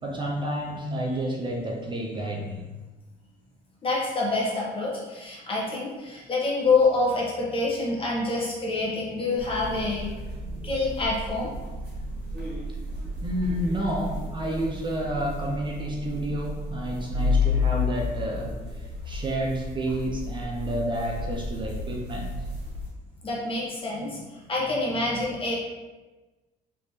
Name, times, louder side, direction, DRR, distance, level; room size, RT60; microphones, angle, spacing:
voice 1, 0.0-2.6 13.2-22.4, right 1 dB, 30° right, -1 dB, 0.5 m, -30 dB
voice 2, 3.8-10.1 10.6-11.5 23.2-25.5, left 3 dB, 30° left, -4 dB, 1.1 m, -26 dB
sound 1, 9.4-22.9, left 3 dB, 75° right, 1.4 m, -32 dB
3.5 x 3.1 x 2.7 m, 1.2 s
cardioid pair, 110°, 17 cm